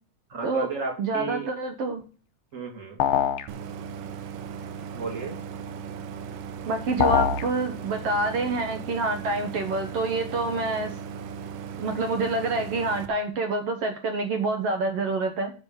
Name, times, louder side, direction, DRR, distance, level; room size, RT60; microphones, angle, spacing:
voice 1, 0.3-1.5 2.5-3.0 4.9-5.4, right 3 dB, 25° right, 3 dB, 2.0 m, -33 dB
voice 2, 1.0-2.0 6.7-10.9 11.8-15.5, right 3 dB, 65° right, 5 dB, 1.6 m, -27 dB
sound 1, 3.0-3.5 7.0-7.5, left 8 dB, 85° left, 1.3 m, -22 dB
Idling, 3.5-13.1, right 6 dB, 85° right, 2.5 m, -37 dB
7.3 x 6.1 x 7.0 m, 0.37 s
omnidirectional pair, 3.8 m